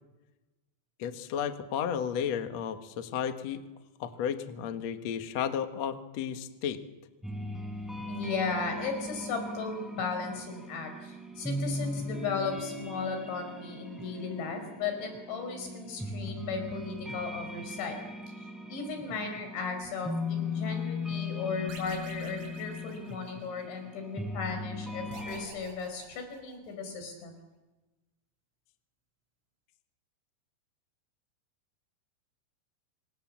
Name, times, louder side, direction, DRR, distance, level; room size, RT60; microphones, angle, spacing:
voice 1, 1.0-3.6 4.0-6.8, left 8 dB, 55° left, 8 dB, 2.0 m, -33 dB
sound 1, 7.2-25.5, left 2 dB, ahead, 4.9 m, -38 dB
voice 2, 8.1-18.0 18.7-27.3, left 4 dB, 90° left, 6 dB, 7.3 m, -36 dB
sound 2, 21.7-23.7 25.1-26.9, right 3 dB, 80° right, 7.7 m, -50 dB
27.5 x 27.0 x 7.5 m, 1.1 s
omnidirectional pair, 5.1 m